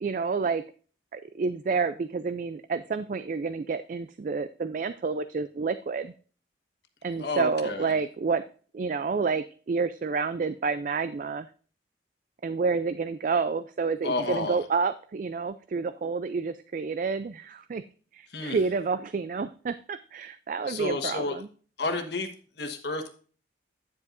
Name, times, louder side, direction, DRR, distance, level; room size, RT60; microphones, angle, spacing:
voice 1, 0.0-0.6 1.1-6.1 7.0-8.4 8.7-11.5 12.4-17.8 18.1-21.5, right 4 dB, 45° right, 12 dB, 0.3 m, -29 dB
voice 2, 7.2-8.0 14.0-14.6 18.3-18.6 20.6-21.4 21.8-22.3 22.6-23.1, left 3 dB, 60° left, 6 dB, 1.3 m, -31 dB
9.4 x 8.1 x 2.5 m, 0.40 s
head